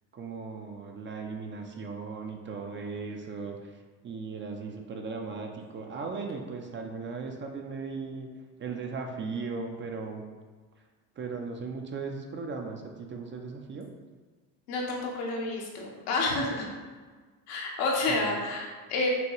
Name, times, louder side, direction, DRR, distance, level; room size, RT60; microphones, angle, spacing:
voice 1, 0.1-3.7 4.0-8.3 8.6-10.2 11.2-13.9 18.1-18.3, right 4 dB, 30° right, 3 dB, 0.4 m, -37 dB
voice 2, 14.7-16.7 17.5-19.1, left 2 dB, 80° left, -1 dB, 1.1 m, -29 dB
5.9 x 2.3 x 3.0 m, 1.4 s
supercardioid pair, 95°, 42 cm